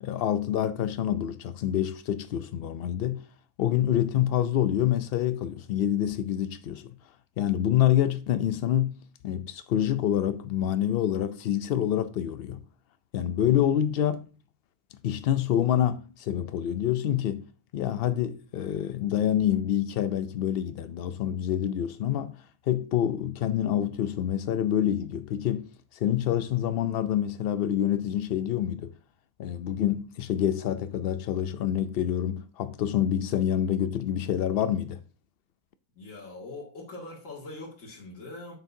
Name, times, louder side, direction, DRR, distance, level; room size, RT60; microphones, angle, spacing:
voice 1, 0.0-3.2 3.6-6.9 7.4-9.0 9.2-12.6 13.1-14.3 15.0-17.5 17.7-22.4 22.7-28.9 29.4-35.0, left 11 dB, 80° left, 0.5 m, -27 dB
voice 2, 35.9-38.5, left 2 dB, 60° left, 2.5 m, -42 dB
9.3 x 7.0 x 2.7 m
omnidirectional pair, 1.5 m